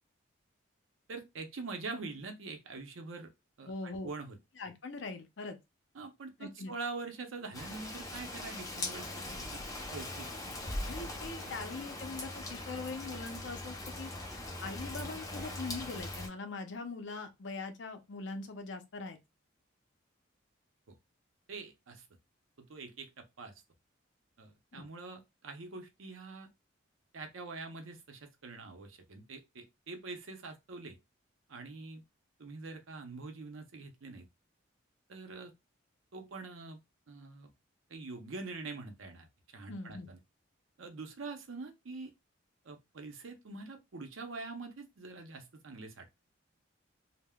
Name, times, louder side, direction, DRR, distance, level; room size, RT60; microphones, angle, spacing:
voice 1, 1.1-3.3 3.6-4.4 5.9-9.6 9.9-10.7 11.4-11.6 20.9-21.0 21.5-22.0 22.6-23.5 24.4-26.5 27.1-31.0 31.5-32.0 32.4-34.3 35.1-35.5 36.1-36.8 37.1-37.5 37.9-39.3 39.5-40.2 40.8-42.1 42.6-46.1, right 3 dB, 80° right, 0.6 m, -44 dB
voice 2, 3.7-4.1 4.6-5.6 6.4-6.7 10.9-14.1 14.6-19.2 24.7-24.9 39.7-40.1, left 3 dB, 60° left, 0.6 m, -42 dB
Rain, 7.5-16.3, left 2 dB, 15° left, 0.5 m, -41 dB
3.4 x 2.1 x 2.2 m
head